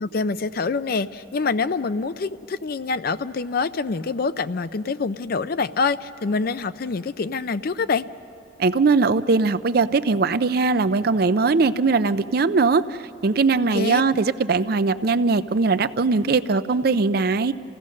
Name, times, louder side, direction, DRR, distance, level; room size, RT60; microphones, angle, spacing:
voice 1, 0.0-8.0 13.7-14.0, left 4 dB, 50° left, 14 dB, 0.5 m, -25 dB
voice 2, 8.6-12.8 13.2-17.5, right 4 dB, 50° right, 13 dB, 0.5 m, -20 dB
28.5 x 16.0 x 6.4 m, 2.7 s
head